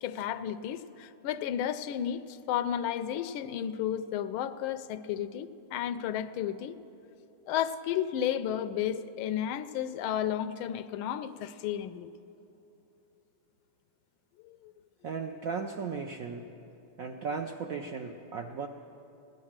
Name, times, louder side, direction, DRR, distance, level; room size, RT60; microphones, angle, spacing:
voice 1, 0.0-6.8 7.5-12.1 14.4-14.7, left 10 dB, 90° left, 13 dB, 1.4 m, -33 dB
voice 2, 15.0-16.5 17.0-18.7, right 5 dB, 75° right, 4 dB, 0.8 m, -36 dB
16.5 x 11.0 x 7.3 m, 3.0 s
omnidirectional pair, 2.2 m